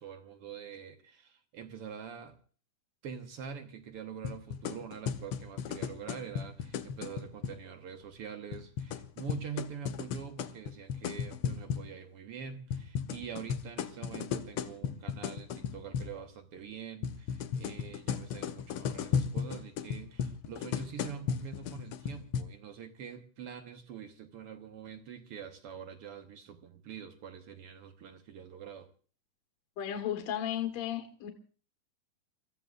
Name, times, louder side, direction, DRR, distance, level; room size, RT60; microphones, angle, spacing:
voice 1, 0.0-2.4 3.0-28.9, right 7 dB, 60° right, 1.8 m, -45 dB
sound 1, 4.2-7.6 8.5-11.9 12.7-16.2 17.0-22.4, left 7 dB, 85° left, 1.2 m, -35 dB
voice 2, 29.8-31.3, left 10 dB, 60° left, 2.5 m, -34 dB
30.0 x 14.5 x 2.4 m
omnidirectional pair, 3.6 m